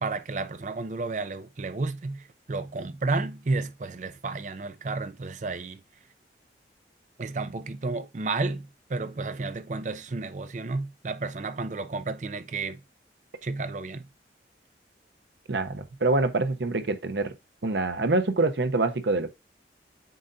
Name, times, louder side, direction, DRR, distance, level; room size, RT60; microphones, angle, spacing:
voice 1, 0.0-5.8 7.2-12.8 13.4-14.1, right 3 dB, 40° right, 0.5 m, -32 dB
voice 2, 15.5-17.3 17.6-19.3, right 2 dB, 80° right, 0.8 m, -25 dB
7.8 x 5.3 x 2.6 m
head